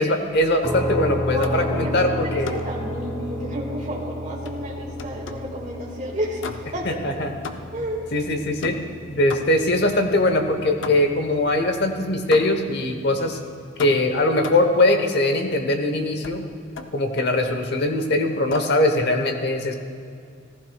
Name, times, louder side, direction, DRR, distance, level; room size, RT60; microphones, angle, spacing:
voice 1, 0.0-2.6 6.8-7.3 8.1-8.8 9.1-13.4 13.8-16.5 16.9-19.7, left 1 dB, 60° left, 5 dB, 1.0 m, -21 dB
sound 1, 0.6-14.3, equal, ahead, 0.7 m, -33 dB
voice 2, 1.3-7.0 7.7-8.0, equal, 40° right, -2 dB, 1.7 m, -31 dB
sound 2, 1.4-1.8 2.4-2.8 4.4-5.6 6.4-6.9 7.4-7.9 8.6-9.8 10.8-11.3 12.3-12.8 13.8-14.8 16.2-16.4 16.8-17.4 18.5-18.9, left 3 dB, 75° left, 0.6 m, -36 dB
15.0 x 14.5 x 2.3 m, 2.3 s
head